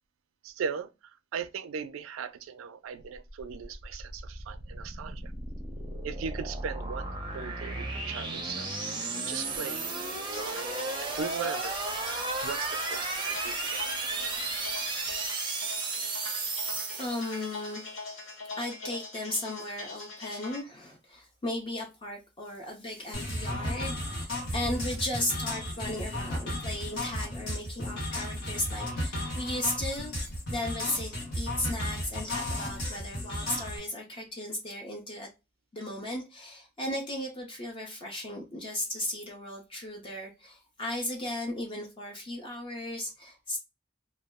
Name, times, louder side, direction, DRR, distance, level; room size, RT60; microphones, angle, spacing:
voice 1, 0.4-5.3 6.0-8.7 9.3-9.9 10.3-14.4, right 6 dB, 75° right, 0.3 m, -39 dB
sound 1, 3.3-17.8, right 3 dB, 20° right, 0.5 m, -34 dB
sound 2, 10.3-20.6, left 3 dB, 85° left, 0.8 m, -43 dB
voice 2, 16.9-17.8 18.6-30.1 30.5-35.3 35.7-43.6, left 1 dB, 25° left, 0.5 m, -36 dB
sound 3, 23.1-33.8, left 1 dB, 60° left, 1.1 m, -34 dB
2.2 x 2.0 x 3.4 m
head